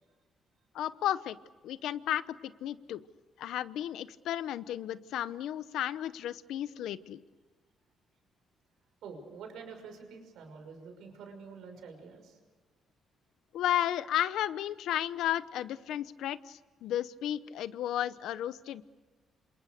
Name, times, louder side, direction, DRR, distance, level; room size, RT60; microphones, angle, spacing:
voice 1, 0.7-1.4 1.6-3.0 3.4-7.2 13.5-18.8, left 11 dB, 85° left, 15 dB, 0.8 m, -33 dB
voice 2, 9.0-12.4, right 5 dB, 85° right, 5 dB, 5.9 m, -47 dB
28.5 x 27.0 x 6.6 m, 1.3 s
cardioid pair, 140°, 0 cm